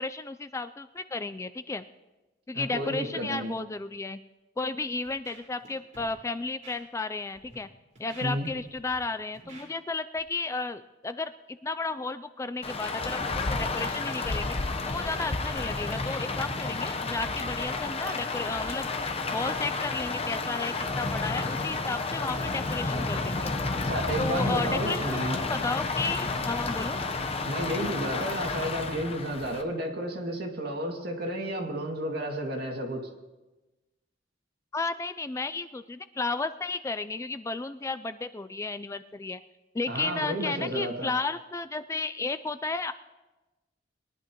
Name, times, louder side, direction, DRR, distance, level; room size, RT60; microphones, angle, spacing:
voice 1, 0.0-1.9 2.5-4.2 4.6-7.7 8.0-11.3 11.6-13.2 13.5-14.6 14.9-18.9 19.3-23.5 24.2-27.0 34.7-39.4 39.7-42.9, left 3 dB, 15° left, 12 dB, 0.3 m, -33 dB
voice 2, 2.5-3.5 8.2-8.5 23.9-25.4 27.4-33.0 39.9-41.1, right 1 dB, 60° right, 0 dB, 2.2 m, -32 dB
Scratching (performance technique), 5.1-5.7 5.9-6.1 6.6-6.8 7.3-7.5 8.0-9.0 9.3-9.7 10.2-10.3, right 2 dB, 40° right, 4.5 m, -50 dB
Rain, 12.6-29.6, left 3 dB, 35° left, 0.8 m, -31 dB
22.0 x 11.0 x 3.0 m, 1.1 s
head